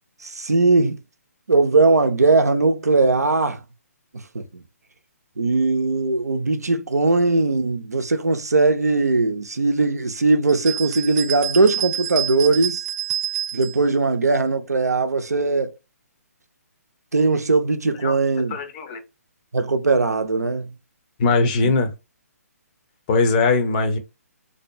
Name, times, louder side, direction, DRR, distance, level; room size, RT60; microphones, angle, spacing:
voice 1, 0.2-1.0 1.5-3.6 4.3-4.4 5.4-12.8 13.5-15.7 17.1-18.6 19.5-20.7 21.6-21.7, right 3 dB, 80° right, 0.5 m, -19 dB
sound 1, 10.5-13.8, right 10 dB, 25° right, 0.3 m, -28 dB
voice 2, 18.5-19.0 21.2-21.9 23.1-24.0, left 3 dB, 30° left, 0.6 m, -20 dB
2.6 x 2.2 x 2.6 m
figure-of-eight pair, 135°, 9 cm